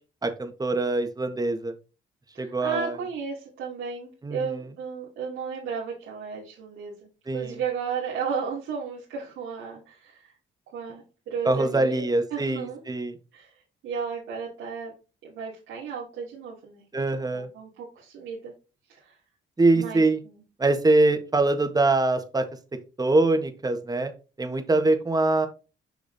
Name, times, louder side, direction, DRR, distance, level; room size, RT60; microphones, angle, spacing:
voice 1, 0.2-1.7 2.4-2.9 4.2-4.5 7.3-7.5 11.4-13.1 16.9-17.5 19.6-20.2 20.6-22.4 23.0-24.1 24.4-25.5, right 2 dB, 20° right, 7 dB, 1.5 m, -23 dB
voice 2, 2.3-10.3 10.7-12.0 12.3-12.8 13.3-14.9 15.2-18.5 18.9-19.2 19.7-20.4, right 6 dB, 85° right, -5 dB, 2.8 m, -34 dB
7.1 x 6.0 x 2.8 m, 0.31 s
cardioid pair, 90°, 20 cm